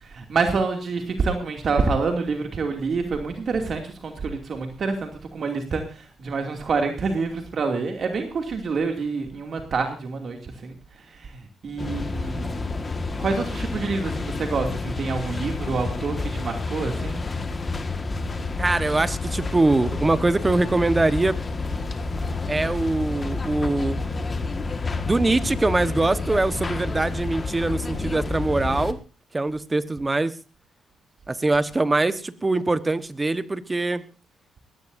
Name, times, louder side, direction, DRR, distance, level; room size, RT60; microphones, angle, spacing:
voice 1, 0.1-10.8 11.2-11.4 11.6-12.5 13.2-17.3, right 4 dB, 50° right, 4 dB, 2.5 m, -27 dB
sound 1, 11.8-28.9, left 3 dB, 30° left, 1.7 m, -29 dB
voice 2, 18.6-21.4 22.5-24.0 25.0-29.0 29.3-30.3 31.3-34.0, right 2 dB, 20° right, 13 dB, 1.2 m, -23 dB
20.5 x 16.5 x 2.7 m, 0.33 s
cardioid pair, 90°, 0 cm